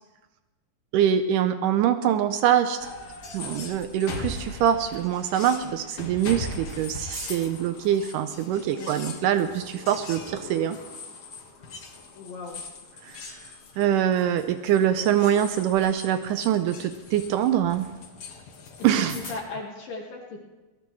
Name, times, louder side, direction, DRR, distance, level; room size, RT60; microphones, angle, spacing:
voice 1, 0.9-2.9 3.3-10.8 13.1-13.3 13.8-17.9 18.8-19.2, right 10 dB, 85° right, 9 dB, 1.8 m, -24 dB
sound 1, 2.8-19.4, left 3 dB, 50° left, 2.1 m, -40 dB
voice 2, 8.7-9.3 12.1-12.6 18.9-20.4, left 3 dB, 65° left, -1 dB, 3.1 m, -38 dB
23.0 x 19.5 x 3.2 m, 1.1 s
omnidirectional pair, 4.6 m